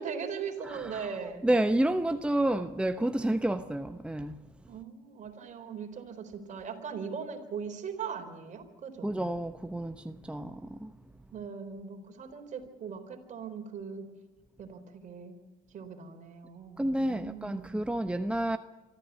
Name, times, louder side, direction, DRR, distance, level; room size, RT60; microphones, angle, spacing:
voice 1, 0.0-1.4 4.7-9.2 11.3-14.1 14.6-15.4 15.7-17.7, right 6 dB, 50° right, 4.1 m, -40 dB
voice 2, 0.6-1.1 1.4-4.4 9.0-10.9 16.8-18.6, right 1 dB, 5° right, 0.9 m, -30 dB
25.0 x 14.0 x 8.3 m
cardioid pair, 90°, 16 cm